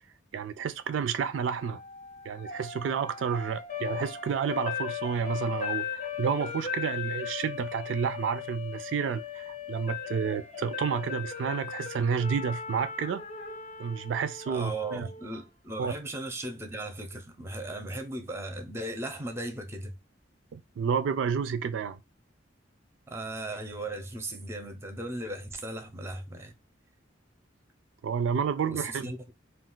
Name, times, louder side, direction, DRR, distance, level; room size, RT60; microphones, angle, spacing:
voice 1, 0.3-1.8 2.2-5.9 6.2-13.2 13.8-15.1 15.8-15.9 20.5-22.0 28.0-29.1, right 6 dB, 75° right, 0.3 m, -30 dB
sound 1, 1.3-15.4, left 7 dB, 40° left, 0.5 m, -38 dB
voice 2, 14.5-19.9 23.1-26.5 28.7-29.3, right 2 dB, 15° right, 0.5 m, -37 dB
2.3 x 2.3 x 3.7 m
head